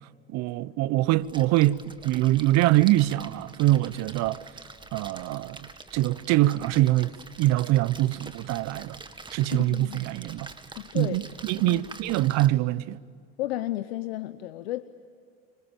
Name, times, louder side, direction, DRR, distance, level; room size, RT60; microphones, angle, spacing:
voice 1, 0.3-4.4 4.9-5.6 5.9-9.0 9.3-10.5 10.9-11.2 11.5-13.0, right 16 dB, 55° right, 0.8 m, -24 dB
Splash splatter, 1.2-12.5, right 3 dB, 15° right, 2.0 m, -45 dB
voice 2, 9.5-10.0 10.8-11.3 11.6-11.9 13.4-14.8, left 15 dB, 80° left, 0.8 m, -33 dB
26.5 x 24.5 x 7.3 m
hypercardioid pair, 85°, 31 cm